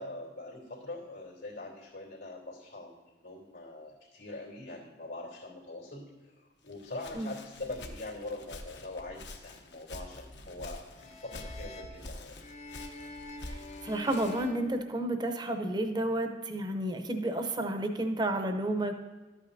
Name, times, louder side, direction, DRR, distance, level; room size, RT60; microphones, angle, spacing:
voice 1, 0.0-6.0 6.6-12.4, left 2 dB, 90° left, -4 dB, 2.8 m, -43 dB
Walk footsteps, 6.7-14.6, left 2 dB, 75° left, 1.0 m, -47 dB
sound 1, 10.9-15.5, left 2 dB, 40° left, 0.5 m, -46 dB
voice 2, 13.5-19.0, right 1 dB, 25° right, 6 dB, 0.7 m, -31 dB
12.5 x 8.4 x 2.7 m, 1.3 s
head